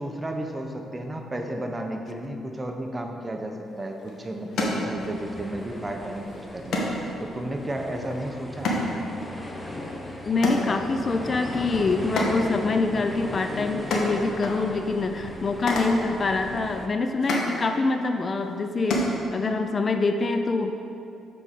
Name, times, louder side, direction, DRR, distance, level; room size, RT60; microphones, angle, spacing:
voice 1, 0.0-8.7, right 1 dB, 20° right, 3 dB, 0.8 m, -33 dB
sound 1, 3.6-19.7, left 1 dB, 70° left, 1.1 m, -33 dB
sound 2, 5.0-16.9, left 1 dB, 15° left, 0.8 m, -38 dB
voice 2, 10.3-20.7, left 3 dB, 35° left, 6 dB, 0.3 m, -25 dB
7.2 x 4.2 x 5.2 m, 2.7 s
cardioid pair, 90°, 0 cm